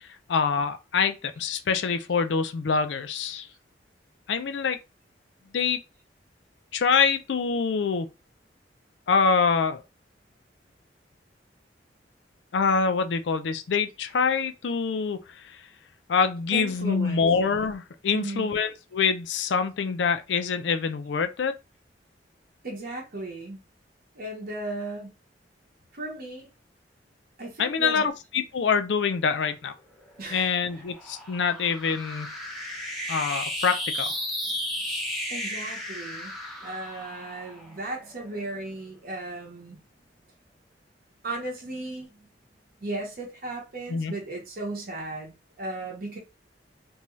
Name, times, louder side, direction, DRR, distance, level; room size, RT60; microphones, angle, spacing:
voice 1, 0.0-3.5 4.3-4.8 5.5-5.8 6.7-8.1 9.1-9.8 12.5-15.6 16.1-21.5 27.6-29.7 30.3-32.4 33.1-34.2 43.9-44.1, left 5 dB, 80° left, 0.4 m, -25 dB
voice 2, 16.5-17.3 18.1-18.5 22.6-23.6 24.2-25.1 25.9-26.5 27.4-28.1 30.2-30.6 35.3-36.3 36.6-39.8 41.2-42.3 42.8-46.2, right 2 dB, 55° right, 0.8 m, -36 dB
sound 1, 30.0-38.6, left 1 dB, ahead, 0.7 m, -34 dB
2.7 x 2.3 x 3.0 m
head